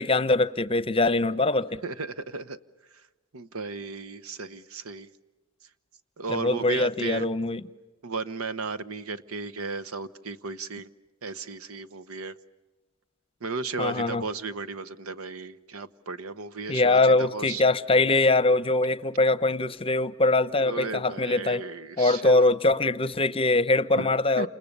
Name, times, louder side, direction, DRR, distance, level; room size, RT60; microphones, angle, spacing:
voice 1, 0.0-1.8 6.3-7.6 13.8-14.2 16.7-21.7 22.0-24.5, left 2 dB, 25° left, 0.8 m, -23 dB
voice 2, 1.8-2.6 3.3-5.1 6.2-7.3 8.0-10.9 11.2-12.3 13.4-17.6 20.6-22.5 23.9-24.1 24.4-24.5, right 4 dB, 80° right, 1.1 m, -35 dB
30.0 x 28.0 x 6.8 m
head